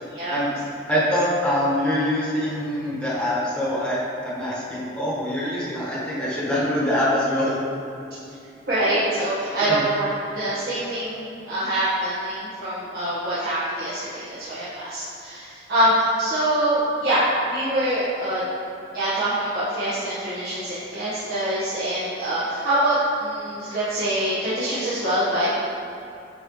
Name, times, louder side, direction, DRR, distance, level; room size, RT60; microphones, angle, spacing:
voice 1, 0.9-7.5 9.6-9.8, equal, 5° left, -8 dB, 1.3 m, -24 dB
voice 2, 8.7-17.2 17.5-18.4 18.9-25.5, right 1 dB, 55° right, -12 dB, 1.3 m, -24 dB
9.1 x 4.5 x 3.1 m, 2.6 s
head